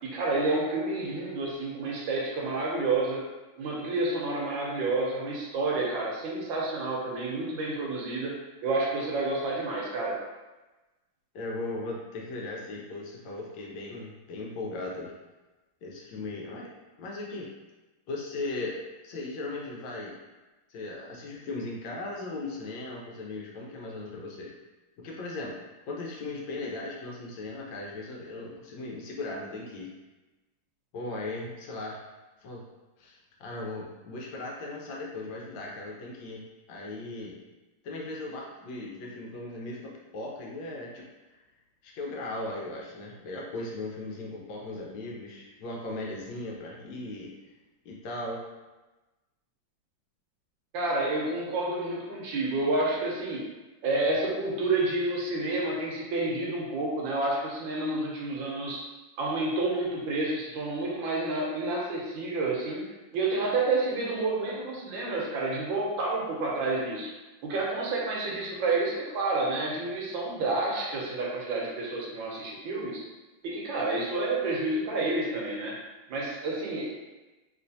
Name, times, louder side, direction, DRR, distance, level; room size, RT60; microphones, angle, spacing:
voice 1, 0.0-3.2 3.6-8.3 8.6-10.2 50.7-53.4 53.8-58.8 59.2-62.8 63.1-67.1 67.4-73.0 73.4-75.8 76.1-76.9, right 2 dB, 75° right, -2 dB, 1.4 m, -29 dB
voice 2, 11.3-15.1 15.8-16.7 17.0-17.5 18.1-20.2 20.7-24.5 25.0-25.6 25.9-29.9 30.9-32.0 32.4-32.6 33.0-37.4 37.8-41.0 41.8-47.3 47.8-48.4, left 2 dB, 75° left, -2 dB, 1.2 m, -37 dB
3.2 x 3.1 x 2.6 m, 1.1 s
omnidirectional pair, 2.3 m